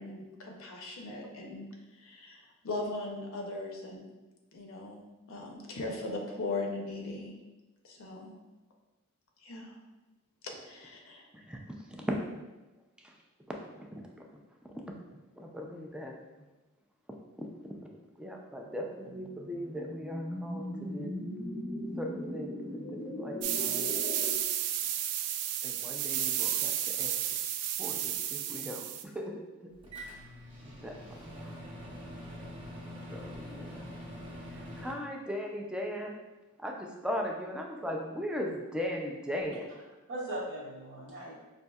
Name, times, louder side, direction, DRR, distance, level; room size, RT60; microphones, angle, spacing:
voice 1, 0.0-1.7 2.0-4.1 4.5-7.3 7.8-8.3 9.4-9.7 10.4-11.3, left 2 dB, 65° left, 1 dB, 0.6 m, -39 dB
voice 2, 13.8-14.3 14.6-14.9 15.4-16.1 17.4-17.5 18.2-21.1 22.0-23.9 25.6-26.7 27.0-27.1 27.8-29.7 30.6-31.5 33.1-33.9 34.8-36.2 36.6-39.7, equal, 5° right, 0 dB, 0.3 m, -38 dB
sound 1, 18.8-24.3, left 1 dB, 30° left, 0.7 m, -39 dB
sound 2, 23.4-29.0, right 10 dB, 85° right, 0.3 m, -32 dB
Microwave oven, 29.8-34.9, equal, 25° right, 0.9 m, -44 dB
voice 3, 39.4-39.8 40.1-41.3, right 1 dB, 60° right, -4 dB, 0.8 m, -40 dB
5.2 x 2.6 x 2.3 m, 1.1 s
head